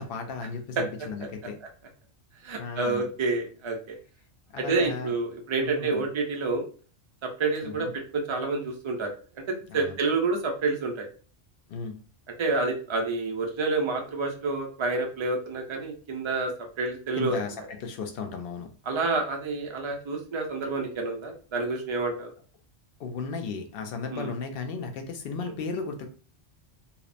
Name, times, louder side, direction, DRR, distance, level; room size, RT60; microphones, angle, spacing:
voice 1, 0.0-1.6 2.5-3.1 4.5-5.1 5.6-6.0 7.6-7.9 9.7-10.0 11.7-11.9 17.2-18.7 23.0-26.1, left 4 dB, 65° left, 4 dB, 0.7 m, -35 dB
voice 2, 2.4-3.8 4.6-6.7 7.2-7.9 8.1-9.1 9.5-11.1 12.4-16.5 16.8-17.4 18.9-22.3 24.1-24.3 25.4-25.5, right 3 dB, 50° right, 2 dB, 0.3 m, -28 dB
2.8 x 2.0 x 2.4 m, 0.40 s
omnidirectional pair, 1.1 m